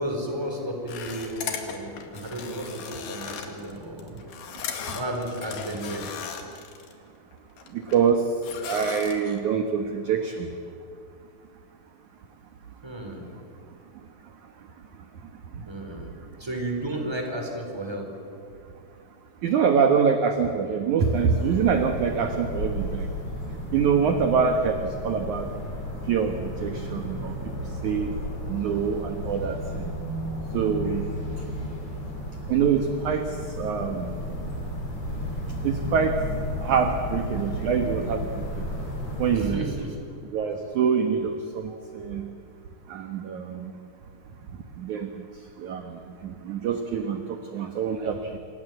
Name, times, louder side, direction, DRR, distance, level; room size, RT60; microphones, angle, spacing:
voice 1, 0.0-4.2 4.9-6.0 12.8-13.3 15.7-16.1 16.4-18.1 39.3-40.0 41.7-41.8, right 1 dB, 5° right, 2 dB, 4.2 m, -33 dB
sound 1, 0.9-6.9 7.3-8.1 8.4-9.4, left 7 dB, 75° left, 4.1 m, -37 dB
voice 2, 7.7-8.3 8.6-10.5 19.4-23.1 23.7-25.5 26.1-27.3 27.8-28.1 28.5-29.9 30.5-31.1 32.5-34.1 35.6-36.2 36.6-38.6 39.2-39.7 40.3-42.3 42.9-43.7 44.8-45.1 45.6-48.4, right 6 dB, 60° right, 6 dB, 2.3 m, -25 dB
sound 2, 21.0-39.4, left 1 dB, 35° left, 6.3 m, -33 dB
28.5 x 25.5 x 7.9 m, 2.4 s
omnidirectional pair, 4.7 m